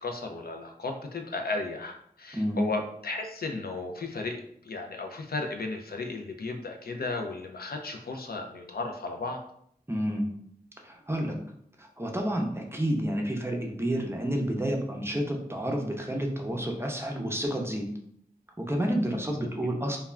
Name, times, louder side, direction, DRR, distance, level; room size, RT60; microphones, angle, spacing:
voice 1, 0.0-9.4 19.0-19.3 19.5-19.7, left 3 dB, 75° left, 3 dB, 0.4 m, -35 dB
voice 2, 9.9-10.3 10.8-11.4 11.8-17.9 18.6-20.0, equal, 15° right, 1 dB, 0.5 m, -30 dB
2.3 x 2.2 x 3.2 m, 0.69 s
wide cardioid pair, 40°, 16 cm